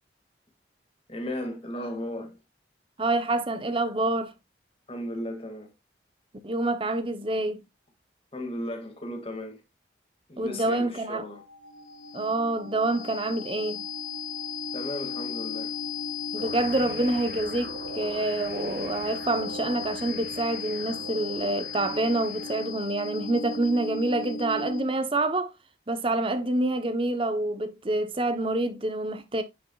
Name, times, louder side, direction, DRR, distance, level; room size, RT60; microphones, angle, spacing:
voice 1, 1.1-2.4 4.9-5.7 8.3-9.6 10.3-11.4 14.7-15.7, equal, 30° left, 1.9 m, -35 dB
voice 2, 3.0-4.3 6.4-7.6 10.4-11.2 12.1-13.9 16.3-25.5 25.9-29.4, right 2 dB, 30° right, 0.7 m, -27 dB
sound 1, 11.2-25.1, left 4 dB, 50° left, 2.8 m, -36 dB
sound 2, 16.4-22.9, right 3 dB, 60° right, 1.1 m, -43 dB
9.3 x 6.1 x 2.3 m
head